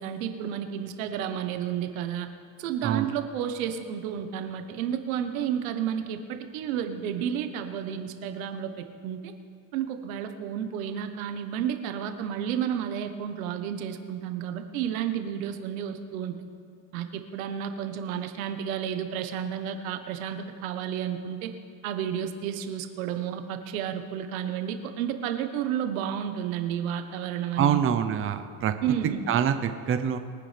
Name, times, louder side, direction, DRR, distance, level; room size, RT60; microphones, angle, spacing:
voice 1, 0.0-2.3 2.6-9.3 9.7-16.4 16.9-21.5 21.8-27.8 28.8-29.2, right 9 dB, 90° right, 7 dB, 1.3 m, -31 dB
voice 2, 27.6-28.7 29.3-30.2, right 8 dB, 30° right, 8 dB, 0.8 m, -25 dB
23.0 x 9.9 x 3.4 m, 2.3 s
supercardioid pair, 125°, 40 cm